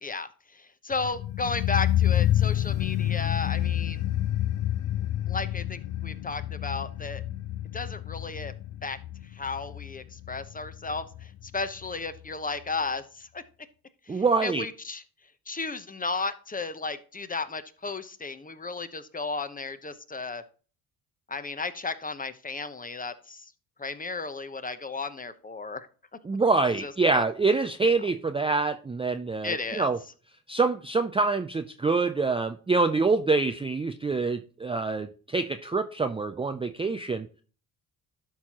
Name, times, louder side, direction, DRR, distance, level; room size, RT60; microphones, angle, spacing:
voice 1, 0.0-4.0 5.3-7.2 7.7-8.5 8.8-9.0 9.2-13.4 14.1-15.0 15.5-20.4 21.3-23.5 23.8-25.9 26.8-27.2 27.8-27.9 29.4-29.9, left 4 dB, 20° left, 11 dB, 0.9 m, -34 dB
sound 1, 0.9-11.9 12.2-12.3, left 12 dB, 45° left, 0.4 m, -29 dB
voice 2, 14.1-14.7 26.3-30.0 30.5-35.1 35.3-37.3, right 3 dB, 15° right, 8 dB, 0.4 m, -25 dB
12.0 x 4.5 x 2.9 m, 0.39 s
supercardioid pair, 65°, 43 cm